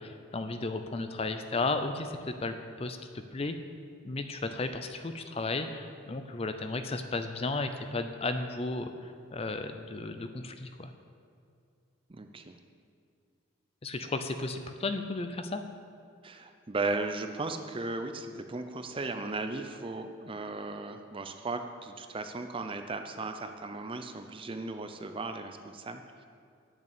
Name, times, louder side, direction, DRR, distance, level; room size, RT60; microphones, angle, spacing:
voice 1, 0.0-3.5 4.0-10.9 13.8-15.6, left 3 dB, 25° left, 8 dB, 0.5 m, -34 dB
voice 2, 12.1-12.6 16.2-26.3, right 3 dB, 25° right, 7 dB, 0.5 m, -36 dB
8.8 x 6.6 x 8.4 m, 2.3 s
head